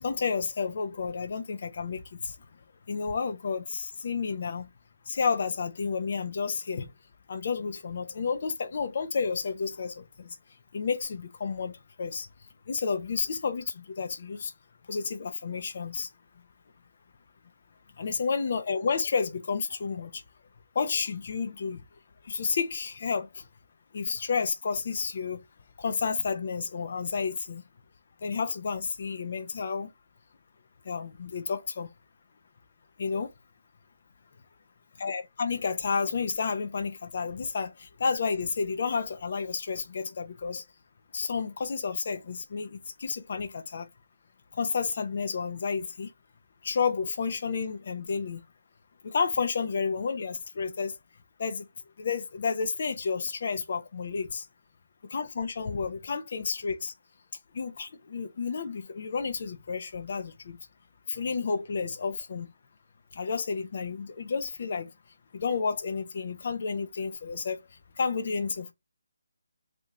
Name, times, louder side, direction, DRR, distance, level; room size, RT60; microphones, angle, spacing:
voice 1, 0.0-2.3 2.9-4.7 5.1-6.9 7.3-10.0 10.7-12.3 12.7-14.5 14.9-16.1 18.0-20.1 20.8-21.8 22.3-23.3 23.9-25.4 25.8-27.6 28.2-29.9 30.9-31.9 33.0-33.3 35.0-40.6 41.1-43.9 44.6-46.1 46.6-48.4 49.0-50.9 51.4-51.6 52.0-54.4 55.1-56.9 57.6-60.6 61.1-62.5 63.2-64.9 65.3-67.6 68.0-68.7, left 5 dB, 50° left, 0.6 m, -31 dB
2.8 x 2.6 x 3.5 m
figure-of-eight pair, 150°, 0 cm